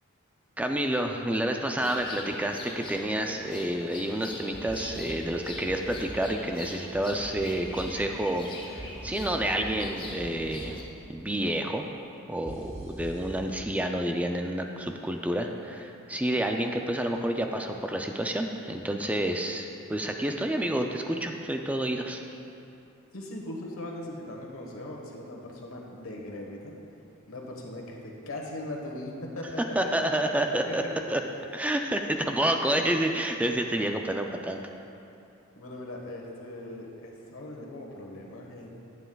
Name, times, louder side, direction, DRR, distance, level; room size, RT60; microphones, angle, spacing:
voice 1, 0.6-8.5 8.7-10.8 11.1-11.8 12.3-22.2 29.8-31.2 31.5-34.6, right 1 dB, 5° right, 3 dB, 0.3 m, -29 dB
sound 1, 1.8-10.8, left 1 dB, 25° left, 0.9 m, -41 dB
sound 2, 4.5-5.2 5.5-6.2 6.9-7.9 8.8-9.7 10.0-10.7 12.4-13.2, right 1 dB, 30° right, 1.5 m, -42 dB
voice 2, 23.1-26.7 27.3-30.1 30.7-30.9 35.5-38.7, left 1 dB, 80° left, 0 dB, 1.2 m, -39 dB
11.0 x 9.2 x 2.3 m, 2.7 s
head